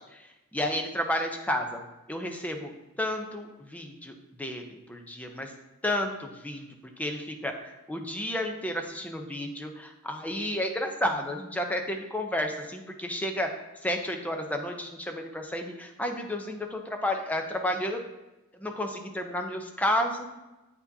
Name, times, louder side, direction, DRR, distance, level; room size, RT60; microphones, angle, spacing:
voice 1, 0.0-1.8 2.1-2.7 3.0-5.5 5.8-6.7 7.0-13.5 13.8-18.0 18.5-20.2, left 1 dB, 5° left, 4 dB, 0.5 m, -31 dB
8.5 x 4.7 x 2.7 m, 1.1 s
head